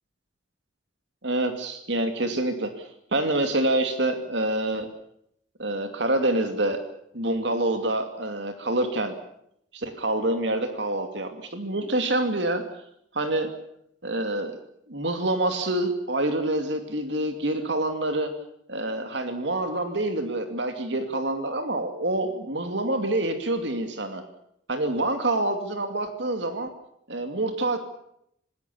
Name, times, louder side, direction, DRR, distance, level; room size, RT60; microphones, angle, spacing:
voice 1, 1.2-4.9 5.6-6.8 7.1-9.1 9.7-12.6 13.1-13.5 14.0-14.5 14.9-18.3 18.7-24.2 24.7-26.7 27.1-27.8, right 1 dB, 65° right, 7 dB, 2.5 m, -26 dB
27.0 x 20.0 x 7.1 m, 0.74 s
head